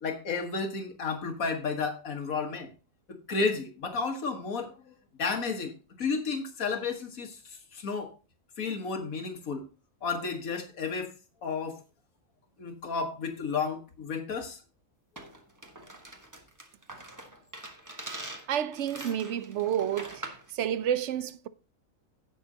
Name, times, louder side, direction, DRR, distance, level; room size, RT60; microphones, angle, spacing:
voice 1, 0.0-2.7 3.1-4.7 5.2-5.7 6.0-7.4 7.7-8.1 8.6-9.7 10.0-11.1 11.4-11.8 12.6-14.6, left 4 dB, 80° left, 1.9 m, -32 dB
sound 1, 15.2-20.5, right 1 dB, 15° right, 1.3 m, -44 dB
voice 2, 18.5-20.2 20.5-21.5, right 10 dB, 65° right, 0.9 m, -30 dB
16.5 x 6.5 x 2.8 m
omnidirectional pair, 1.4 m